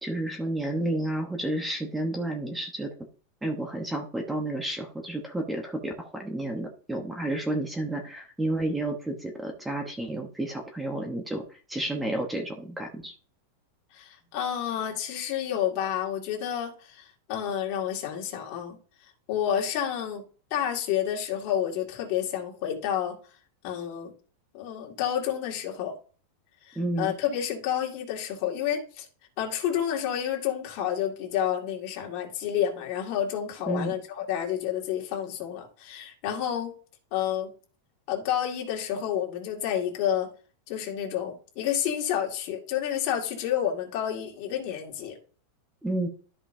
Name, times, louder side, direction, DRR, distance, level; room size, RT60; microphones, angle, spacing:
voice 1, 0.0-2.9 3.4-11.4 11.7-13.1 26.8-27.1 33.7-33.9 45.8-46.1, right 1 dB, 5° right, 3 dB, 1.0 m, -31 dB
voice 2, 13.9-18.8 19.3-20.2 20.5-23.2 23.6-24.1 24.5-25.9 26.7-29.0 29.4-36.7 37.1-37.5 38.1-40.3 40.7-45.2, left 10 dB, 45° left, 0 dB, 2.2 m, -29 dB
13.0 x 5.4 x 2.7 m, 0.40 s
supercardioid pair, 155°, 0 cm